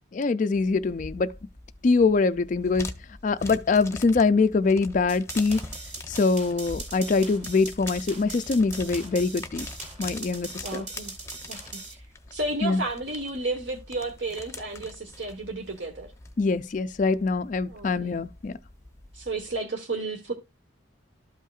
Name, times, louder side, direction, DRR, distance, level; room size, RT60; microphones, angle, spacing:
voice 1, 0.1-1.3 1.8-2.9 3.2-5.6 6.1-9.7 10.0-10.9 12.6-12.8 16.4-18.5, left 4 dB, 40° left, 0.3 m, -24 dB
sound 1, 0.5-19.6, left 2 dB, 15° left, 0.7 m, -44 dB
sound 2, 5.1-11.9, right 3 dB, 35° right, 2.5 m, -40 dB
voice 2, 10.6-11.1 11.5-11.8 12.3-16.1 17.6-18.1 19.1-20.3, right 2 dB, 60° right, 1.2 m, -32 dB
13.0 x 5.5 x 2.4 m
head